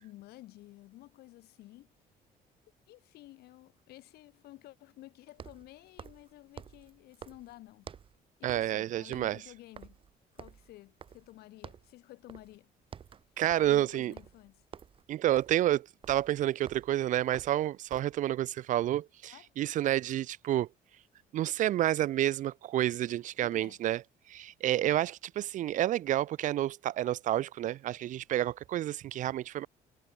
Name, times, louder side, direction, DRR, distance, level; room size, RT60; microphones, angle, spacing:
voice 1, 0.0-1.9 2.9-7.9 8.4-10.0 10.3-12.7 13.6-14.6 19.3-19.5 23.4-23.8 24.8-25.0, left 17 dB, 90° left, 5.7 m, -52 dB
sound 1, 2.0-2.1 5.3-8.2 8.5-8.8 9.1-11.4 11.6-11.9 12.3-12.6 12.8-18.2, right 7 dB, 35° right, 1.7 m, -50 dB
voice 2, 8.4-9.4 13.4-14.1 15.1-20.7 21.3-24.0 24.3-29.7, right 13 dB, 55° right, 0.5 m, -29 dB
cardioid pair, 155°, 16 cm